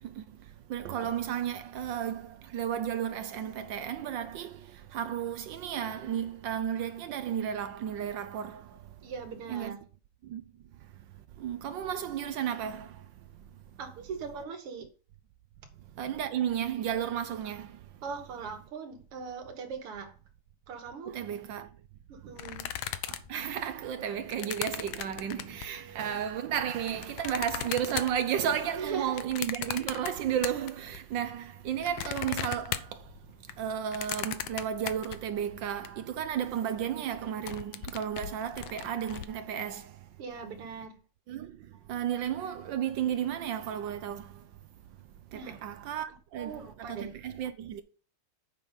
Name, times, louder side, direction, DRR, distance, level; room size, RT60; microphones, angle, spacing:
voice 1, 0.0-0.4 0.7-8.8 9.5-9.7 10.2-10.4 11.4-13.0 16.0-17.8 21.0-21.7 23.1-33.1 33.6-40.0 41.3-44.5 45.3-47.8, right 9 dB, 70° right, 1.2 m, -33 dB
voice 2, 9.0-9.8 13.8-14.9 18.0-20.1 20.7-21.2 22.1-22.7 25.7-26.2 28.8-29.2 40.2-41.0 45.3-45.6 46.3-47.1, right 6 dB, 90° right, 2.4 m, -40 dB
sound 1, 22.4-25.8 26.5-31.0 31.3-35.9 36.3-36.4 36.6-36.9 37.2-39.3, left 12 dB, 75° left, 1.4 m, -38 dB
7.4 x 5.2 x 5.6 m
omnidirectional pair, 2.4 m